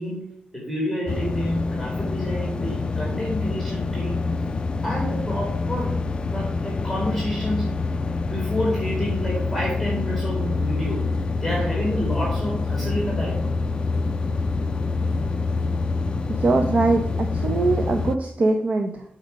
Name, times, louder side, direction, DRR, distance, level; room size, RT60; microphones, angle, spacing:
voice 1, 0.0-4.2 4.8-6.0 6.3-7.8 8.2-11.1 11.4-13.5, equal, 5° right, -4 dB, 2.3 m, -29 dB
sound 1, 1.1-18.2, left 3 dB, 30° left, 0.3 m, -26 dB
voice 2, 16.4-19.0, right 3 dB, 45° right, 4 dB, 0.7 m, -22 dB
8.7 x 4.3 x 5.1 m, 0.66 s
wide cardioid pair, 140°, 3 cm